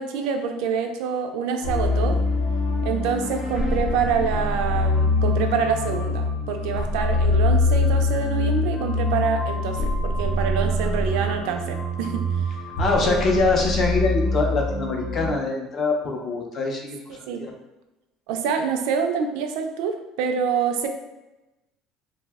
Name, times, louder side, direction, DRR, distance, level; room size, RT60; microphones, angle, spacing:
voice 1, 0.0-2.2 2.8-12.2 13.0-13.2 17.1-17.4 18.3-19.9 20.2-20.9, right 6 dB, 70° right, 5 dB, 0.3 m, -26 dB
sound 1, 1.6-15.3, left 2 dB, 75° left, 0.8 m, -24 dB
voice 2, 12.8-17.0, left 3 dB, 30° left, 1 dB, 0.4 m, -23 dB
2.7 x 2.0 x 3.4 m, 1.0 s
cardioid pair, 180°, 0 cm